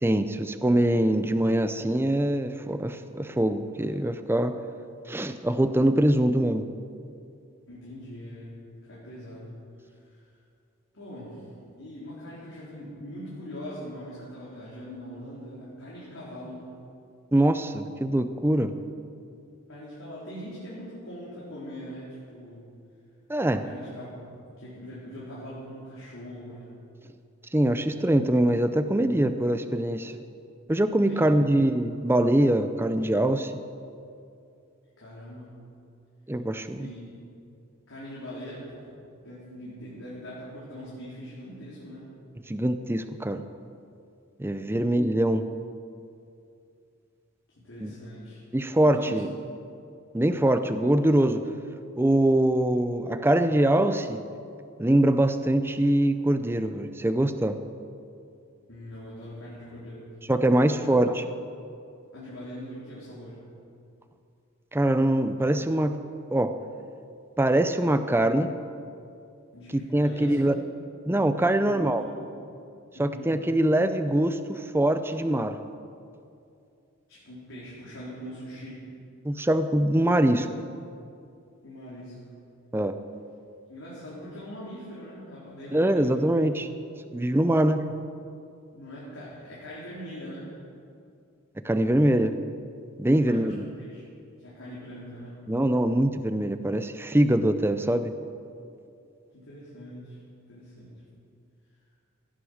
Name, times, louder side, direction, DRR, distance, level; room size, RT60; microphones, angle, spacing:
voice 1, 0.0-4.6 5.1-6.7 17.3-18.7 23.3-23.6 27.5-30.1 30.7-33.5 36.3-36.9 42.5-43.4 44.4-45.4 47.8-47.9 48.5-49.3 50.1-51.5 52.0-54.2 54.8-57.6 60.3-61.2 64.7-66.0 66.3-66.6 67.4-68.5 69.7-70.5 71.1-72.0 73.0-75.6 79.2-80.5 82.7-83.0 85.7-86.7 87.1-87.9 91.6-92.4 93.0-93.6 95.5-98.1, right 1 dB, 10° right, 9 dB, 0.5 m, -23 dB
voice 2, 7.7-8.6 8.8-10.2 10.9-16.7 19.7-22.6 23.6-24.1 24.6-26.7 31.0-31.3 35.0-35.6 36.5-37.1 37.9-38.9 39.2-42.1 44.7-45.0 47.5-48.4 48.8-49.4 58.7-60.1 60.5-60.9 62.1-63.4 69.5-70.5 71.6-72.3 72.9-73.3 77.1-78.9 81.6-82.2 83.7-86.4 88.7-90.5 93.1-95.5 99.3-101.0, equal, 90° left, -9 dB, 3.9 m, -42 dB
16.5 x 10.0 x 6.4 m, 2.5 s
head